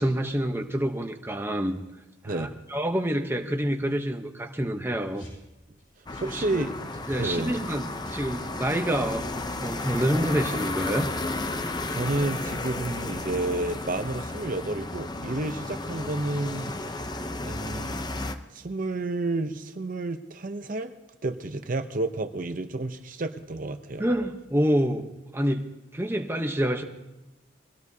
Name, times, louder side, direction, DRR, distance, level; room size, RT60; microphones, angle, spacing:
voice 1, 0.0-1.8 2.2-5.3 6.2-6.6 7.1-11.1 24.0-25.1 25.3-26.8, equal, 10° right, 4 dB, 0.8 m, -27 dB
sound 1, 4.9-13.8, equal, 85° left, 7.4 m, -51 dB
sound 2, 6.1-18.3, left 2 dB, 20° left, 0.7 m, -33 dB
voice 2, 6.2-6.7 7.2-7.5 11.9-16.7 17.4-18.0 18.5-20.9 21.2-24.1, right 2 dB, 45° right, 8 dB, 0.7 m, -30 dB
22.5 x 18.0 x 2.8 m, 1.0 s
head